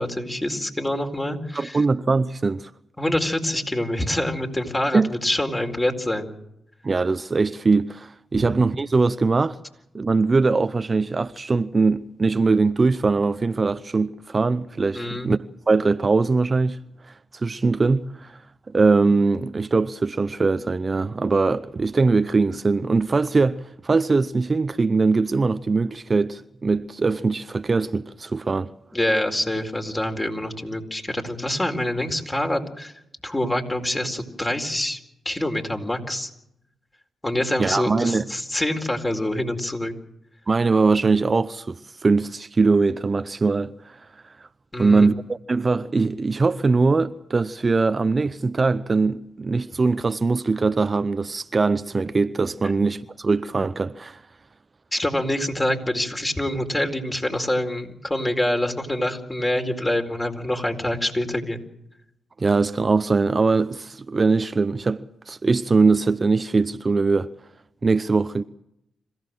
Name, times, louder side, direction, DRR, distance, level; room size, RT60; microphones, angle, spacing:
voice 1, 0.0-1.8 3.0-6.3 8.3-8.5 14.9-15.3 28.9-32.9 33.2-35.0 35.2-36.3 37.2-39.9 44.7-45.1 54.9-61.6, left 1 dB, 20° left, 4.4 m, -26 dB
voice 2, 1.5-2.7 4.9-5.1 6.8-9.6 9.9-15.4 15.7-16.8 17.3-18.4 18.7-28.7 37.6-38.2 40.5-41.8 42.0-44.0 44.8-54.2 62.4-67.3 67.8-68.4, right 4 dB, 40° right, 0.8 m, -21 dB
26.5 x 15.5 x 7.8 m
supercardioid pair, 45°, 0 cm